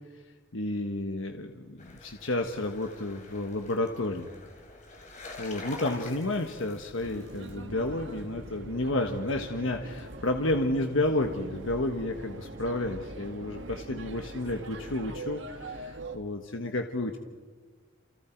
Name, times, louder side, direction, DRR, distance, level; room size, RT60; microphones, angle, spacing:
voice 1, 0.5-4.3 5.4-17.2, left 2 dB, 75° left, 4 dB, 1.4 m, -31 dB
sound 1, 1.8-7.6, left 2 dB, 35° left, 4.1 m, -46 dB
sound 2, 7.0-16.2, right 2 dB, 65° right, 1.9 m, -43 dB
29.0 x 28.5 x 4.6 m, 1.5 s
head